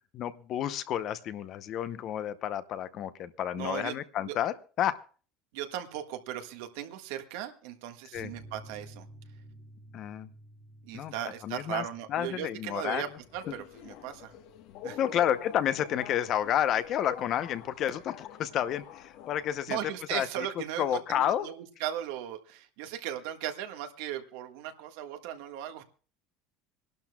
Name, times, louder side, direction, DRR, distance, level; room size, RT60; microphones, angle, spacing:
voice 1, 0.1-5.0 8.1-8.3 9.9-10.3 10.9-11.1 11.4-11.8 12.1-13.0 13.5-13.6 15.0-19.8 20.1-20.5 20.8-21.5, left 10 dB, 40° left, 13 dB, 0.7 m, -30 dB
voice 2, 3.5-3.9 4.3-4.4 5.5-9.1 10.8-13.1 13.3-14.3 14.8-15.0 19.7-25.8, right 11 dB, 75° right, 6 dB, 1.6 m, -37 dB
sound 1, 8.2-15.3 15.5-15.6 16.0-16.1, right 1 dB, 35° right, 1.0 m, -53 dB
Subway metro underground, 13.1-19.9, left 10 dB, 55° left, 1.2 m, -46 dB
26.0 x 12.0 x 2.3 m, 0.38 s
cardioid pair, 150°, 0 cm